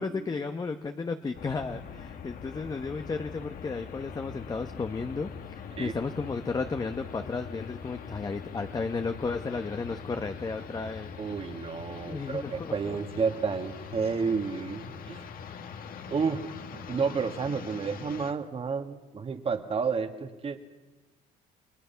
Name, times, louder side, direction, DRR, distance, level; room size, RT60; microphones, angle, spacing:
voice 1, 0.0-11.1 12.1-13.0, left 4 dB, 25° left, 7 dB, 1.0 m, -33 dB
sound 1, 1.3-18.3, left 6 dB, 60° left, 1.8 m, -43 dB
voice 2, 11.2-15.2 16.1-16.4 16.7-20.6, right 5 dB, 35° right, 7 dB, 1.9 m, -31 dB
29.5 x 20.5 x 5.8 m, 1.2 s
cardioid pair, 110°, 17 cm